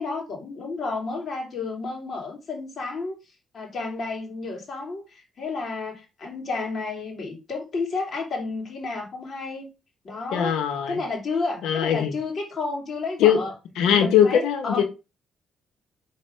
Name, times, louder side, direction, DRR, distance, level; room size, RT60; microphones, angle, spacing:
voice 1, 0.0-3.1 3.5-9.7 10.0-10.6 10.9-13.5 13.9-14.8, left 3 dB, 50° left, 2.7 m, -31 dB
voice 2, 10.3-11.0 11.6-12.1 13.2-13.4 13.8-14.8, left 9 dB, 85° left, 1.3 m, -20 dB
5.6 x 4.0 x 5.1 m
cardioid pair, 90°, 0 cm